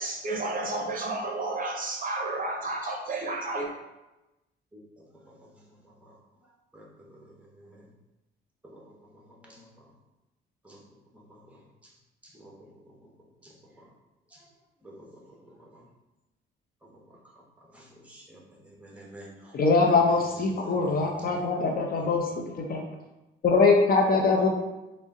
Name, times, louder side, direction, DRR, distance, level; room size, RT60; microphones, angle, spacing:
voice 1, 0.0-3.7, right 2 dB, 45° right, 1 dB, 0.6 m, -31 dB
voice 2, 6.7-7.8 8.7-9.7 10.6-10.8 11.1-11.4 12.2-12.5 13.4-13.5 14.3-14.4 14.8-15.0 15.5-15.8 17.7-20.2 20.5-21.4 22.0-22.3 24.1-24.5, right 1 dB, 5° right, -3 dB, 1.0 m, -50 dB
voice 3, 19.5-22.3 22.5-22.8 23.4-24.5, left 4 dB, 50° left, 1 dB, 0.6 m, -22 dB
3.8 x 2.1 x 3.6 m, 1.0 s
cardioid pair, 90°, 20 cm